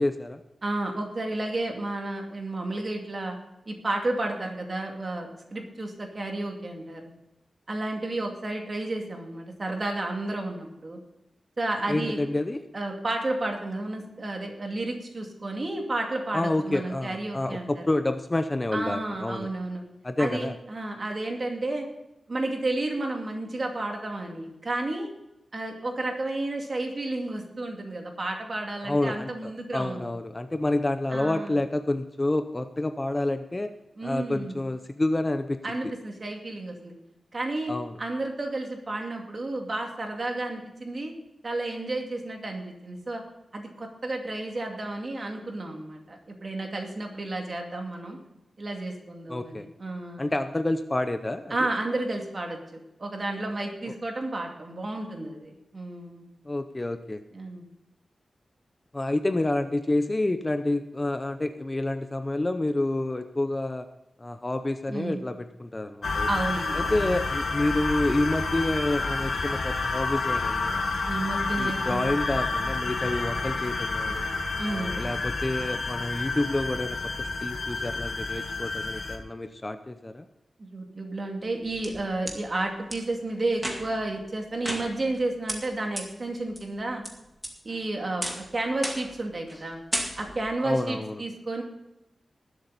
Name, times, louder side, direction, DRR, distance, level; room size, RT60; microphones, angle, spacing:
voice 1, 0.0-0.4 11.9-12.7 16.3-19.5 20.0-20.6 28.8-33.7 34.0-35.6 37.7-38.0 49.3-49.7 50.2-51.7 53.9-54.0 56.4-57.2 58.9-63.9 64.2-66.3 66.7-70.8 71.6-74.3 74.7-80.3 90.6-91.2, left 2 dB, 20° left, 9 dB, 0.7 m, -28 dB
voice 2, 0.6-3.4 3.7-7.1 7.7-11.0 11.6-12.2 12.7-17.7 18.7-19.8 20.2-21.9 22.3-25.1 25.5-30.1 31.1-31.6 34.0-34.6 35.6-36.9 37.3-37.7 38.0-41.1 41.4-43.2 43.5-48.2 48.6-50.3 51.5-56.3 57.3-57.6 64.9-65.2 66.3-67.1 71.1-72.1 74.6-75.0 80.6-87.0 87.6-89.8 90.2-91.6, right 2 dB, 40° right, 2 dB, 2.4 m, -32 dB
sound 1, 66.0-79.2, left 3 dB, 65° left, 1.6 m, -29 dB
sound 2, 81.4-82.4 82.9-83.0 83.5-84.1 84.6-85.2 85.5-85.6 86.0-86.1 86.5-87.1 87.4-87.8 88.2-88.5 88.8-89.2 89.5-89.6 89.9-90.5, equal, 10° right, 2.1 m, -33 dB
20.0 x 7.9 x 4.1 m, 0.92 s
wide cardioid pair, 135°, 0 cm